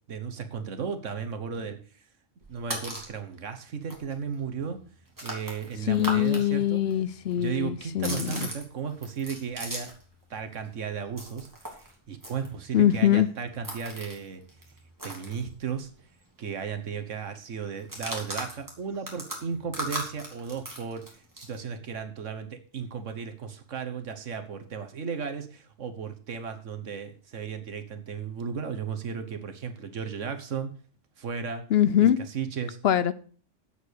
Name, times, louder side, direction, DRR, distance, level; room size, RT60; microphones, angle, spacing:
voice 1, 0.1-1.8 2.5-4.8 5.2-6.8 7.4-9.9 10.3-14.4 15.0-15.9 16.4-21.1 21.4-30.7 31.2-31.6 32.0-32.8, right 6 dB, 75° right, 7 dB, 1.5 m, -35 dB
sound 1, 2.4-3.2 3.6-3.7 3.9-6.4 6.7-10.1 10.4-16.0 16.3-16.4 16.7-17.0 17.8-21.6, right 1 dB, 15° right, 2.9 m, -38 dB
voice 2, 5.9-8.5 12.7-13.3 31.7-32.2 32.8-33.1, left 11 dB, 60° left, 15 dB, 0.9 m, -23 dB
8.2 x 8.0 x 6.4 m, 0.42 s
omnidirectional pair, 1.3 m